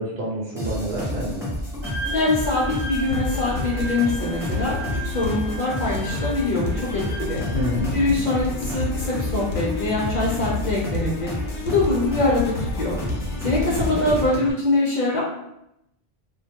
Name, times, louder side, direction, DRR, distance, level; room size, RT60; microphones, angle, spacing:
voice 1, 0.0-1.5 7.5-8.2 13.7-14.0, equal, 70° right, -4 dB, 0.9 m, -28 dB
sound 1, 0.6-14.3, equal, 5° right, 0.5 m, -30 dB
Wind instrument woodwind instrument, 1.8-7.8, right 2 dB, 45° right, 0.7 m, -36 dB
voice 2, 2.1-7.4 7.9-11.3 11.7-13.0 13.4-15.2, left 2 dB, 55° left, -4 dB, 0.5 m, -23 dB
sound 2, 3.1-14.5, left 4 dB, 85° left, 0.8 m, -32 dB
2.1 x 2.1 x 2.8 m, 0.82 s
omnidirectional pair, 1.1 m